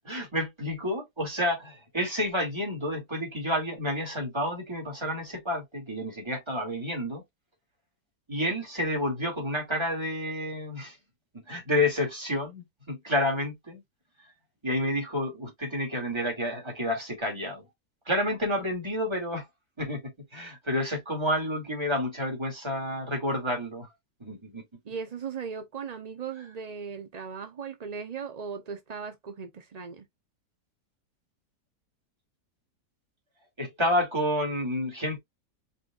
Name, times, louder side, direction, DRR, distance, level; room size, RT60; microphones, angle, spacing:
voice 1, 0.0-7.2 8.3-11.0 11.5-13.8 14.6-17.7 18.1-19.5 19.8-23.9 24.2-24.6 33.6-35.2, left 1 dB, 15° right, 2.5 m, -30 dB
voice 2, 24.8-30.1, right 6 dB, 60° right, 0.4 m, -38 dB
5.4 x 4.0 x 2.4 m
omnidirectional pair, 1.9 m